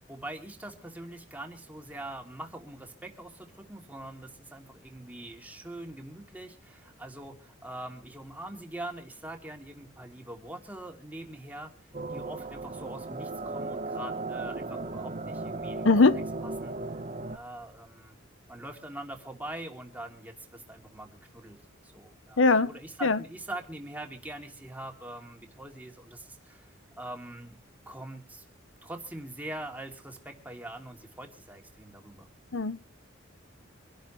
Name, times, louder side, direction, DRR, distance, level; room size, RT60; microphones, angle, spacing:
voice 1, 0.1-11.7 12.1-16.1 16.4-16.8 17.3-18.2 18.5-27.6 27.9-28.4 28.8-32.3, right 1 dB, 10° right, 2.9 m, -43 dB
sound 1, 11.9-17.4, right 3 dB, 35° right, 1.2 m, -36 dB
voice 2, 15.8-16.2 22.4-22.7 23.0-23.2 32.5-32.8, left 3 dB, 75° left, 0.9 m, -21 dB
25.5 x 11.5 x 3.2 m
head